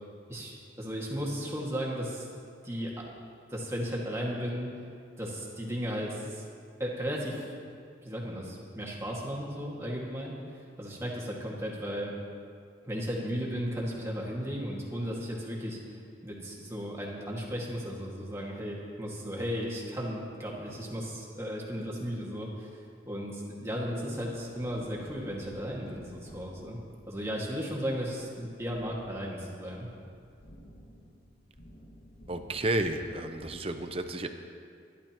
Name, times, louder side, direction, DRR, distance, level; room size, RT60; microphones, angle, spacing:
voice 1, 0.3-2.3 2.6-3.0 3.5-4.7 5.2-6.4 6.8-7.5 8.0-12.1 12.8-16.0 16.2-22.8 23.0-26.8 27.1-29.9, equal, 15° right, -4 dB, 2.0 m, -35 dB
sound 1, 24.1-33.6, equal, 50° left, 2.3 m, -53 dB
voice 2, 32.3-34.3, right 2 dB, 30° right, 7 dB, 0.7 m, -31 dB
23.0 x 11.5 x 3.0 m, 2.3 s
head